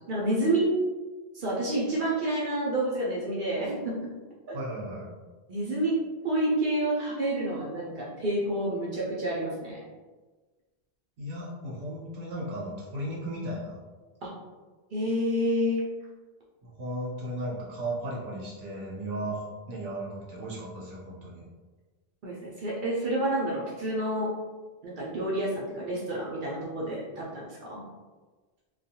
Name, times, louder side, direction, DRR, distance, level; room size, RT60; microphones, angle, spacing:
voice 1, 0.1-0.7 1.3-4.0 4.5-4.6 5.5-6.0 6.2-9.8 14.2-14.3 14.9-15.9 22.2-24.3 24.8-27.8, right 1 dB, 60° right, -5 dB, 0.6 m, -29 dB
voice 2, 4.5-5.1 11.2-13.8 16.6-21.4, right 1 dB, 80° right, -5 dB, 0.9 m, -35 dB
2.3 x 2.2 x 2.7 m, 1.3 s
omnidirectional pair, 1.0 m